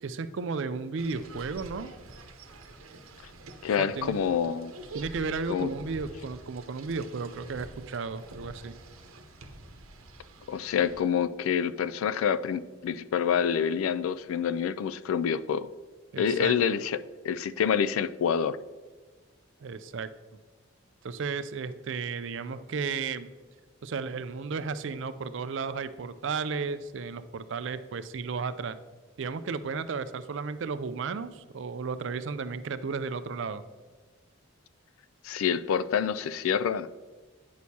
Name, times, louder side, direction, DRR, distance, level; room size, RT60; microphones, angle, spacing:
voice 1, 0.0-1.9 3.8-4.1 4.9-8.7 16.1-16.6 19.6-20.1 21.0-23.3 23.8-28.8 29.2-33.6, right 5 dB, 60° right, 13 dB, 0.4 m, -34 dB
sound 1, 1.0-11.0, right 2 dB, 90° right, 0.9 m, -47 dB
voice 2, 3.6-4.7 5.5-5.7 10.5-15.7 16.2-17.0 17.2-18.6 35.2-36.9, left 7 dB, 80° left, 15 dB, 0.3 m, -27 dB
9.2 x 6.3 x 2.8 m, 1.4 s
head